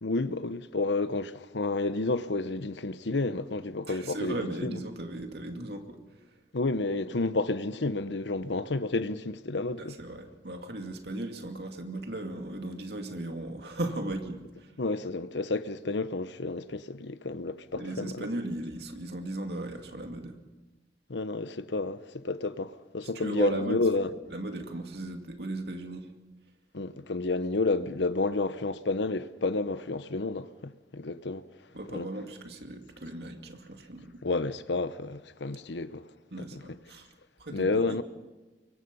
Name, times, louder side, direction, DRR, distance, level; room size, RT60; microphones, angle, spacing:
voice 1, 0.0-4.8 6.5-10.0 14.8-18.3 21.1-24.1 26.7-31.5 31.9-32.1 34.2-36.1 36.4-36.6 37.5-38.0, left 3 dB, 90° left, 1.0 m, -30 dB
voice 2, 3.9-6.0 9.8-14.7 17.7-20.4 23.1-23.8 24.3-26.1 31.7-34.2 36.3-37.1 37.4-38.0, right 1 dB, 65° right, 2.5 m, -37 dB
24.0 x 24.0 x 5.5 m
head